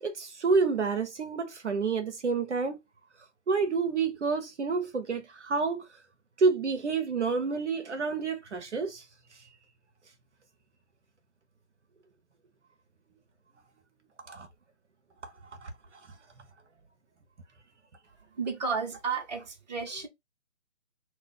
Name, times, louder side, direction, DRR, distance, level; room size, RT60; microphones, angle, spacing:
voice 1, 0.0-2.8 3.5-5.8 6.4-9.0 14.3-14.5 15.2-15.3 15.6-15.7, right 4 dB, 75° right, 0.7 m, -28 dB
voice 2, 18.4-20.1, right 5 dB, 35° right, 0.8 m, -32 dB
2.4 x 2.2 x 3.8 m
figure-of-eight pair, 140°, 35 cm